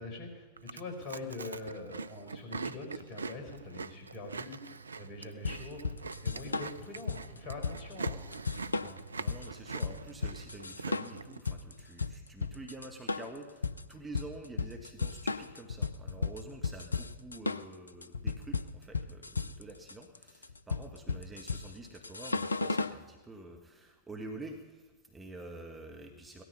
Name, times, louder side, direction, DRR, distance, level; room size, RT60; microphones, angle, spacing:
voice 1, 0.0-8.2, left 3 dB, 35° left, 2 dB, 4.3 m, -44 dB
Chewing mastication, 0.6-11.4, right 4 dB, 75° right, 0.5 m, -43 dB
sound 1, 5.4-23.0, left 4 dB, 80° left, 0.5 m, -35 dB
voice 2, 8.8-26.4, right 2 dB, 10° right, 2 dB, 1.6 m, -48 dB
17.5 x 13.0 x 5.6 m, 1.3 s
figure-of-eight pair, 90°, 0 cm